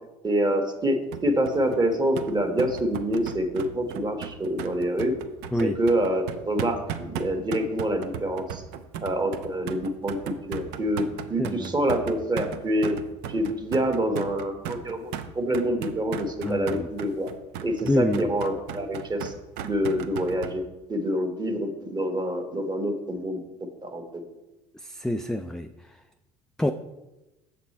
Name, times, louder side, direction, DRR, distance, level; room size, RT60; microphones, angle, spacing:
voice 1, 0.2-5.1 5.6-8.6 9.0-13.0 13.3-17.3 17.6-19.3 19.6-20.6 20.9-23.4 23.8-24.2, equal, 25° right, 5 dB, 1.4 m, -26 dB
sound 1, 1.1-20.5, right 9 dB, 65° right, 0.7 m, -36 dB
voice 2, 11.4-11.7 16.4-16.9 17.9-18.3 24.8-25.7 26.6-26.7, left 1 dB, 5° left, 7 dB, 0.3 m, -26 dB
7.1 x 5.9 x 4.3 m, 1.0 s
hypercardioid pair, 75°, 18 cm